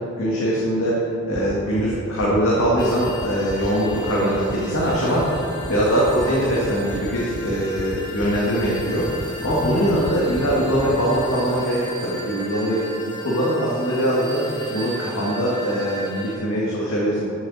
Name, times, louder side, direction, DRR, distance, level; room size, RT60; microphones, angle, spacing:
voice 1, 0.0-12.9 13.2-14.4 14.7-17.3, equal, 70° left, -6 dB, 2.0 m, -22 dB
sound 1, 1.3-11.2, right 2 dB, 25° right, 0.6 m, -32 dB
sound 2, 2.8-16.4, left 1 dB, 20° left, 1.5 m, -37 dB
13.5 x 8.0 x 4.3 m, 2.9 s
head